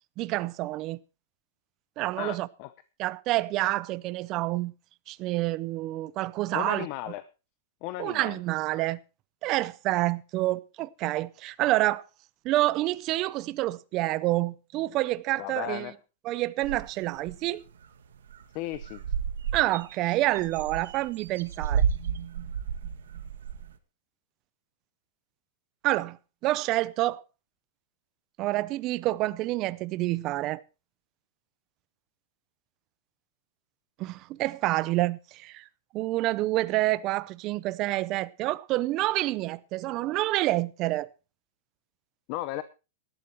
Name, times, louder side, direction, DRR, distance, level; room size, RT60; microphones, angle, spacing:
voice 1, 0.2-1.0 2.0-2.5 3.0-4.7 5.1-6.9 8.0-9.0 9.4-12.0 12.4-15.9 16.2-17.6 19.5-21.8 25.8-26.2 26.4-27.2 28.4-30.6 34.0-35.6 35.9-41.1, right 17 dB, 30° right, 0.5 m, -28 dB
voice 2, 2.2-2.7 6.5-7.2 7.8-8.4 15.4-15.9 18.5-19.0 42.3-42.6, left 16 dB, 35° left, 0.7 m, -35 dB
sound 1, 16.6-17.4 17.8-17.9 18.2-18.4 18.7-23.7, right 7 dB, 85° right, 1.7 m, -32 dB
18.5 x 12.0 x 3.1 m
supercardioid pair, 165°, 0 cm